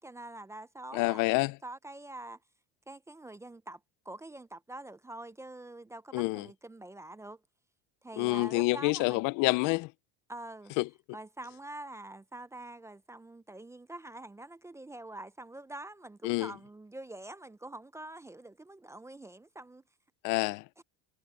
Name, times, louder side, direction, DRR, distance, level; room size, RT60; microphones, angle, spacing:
voice 1, 0.0-2.4 2.9-3.8 4.0-7.4 8.0-9.3 10.3-10.7 11.1-19.8 20.8-20.9, right 2 dB, 10° right, 0.5 m, -45 dB
voice 2, 0.9-1.5 6.1-6.4 8.2-9.9 10.8-10.9 16.2-16.5 20.2-20.6, left 25 dB, 60° left, 0.5 m, -27 dB
cardioid pair, 130°, 36 cm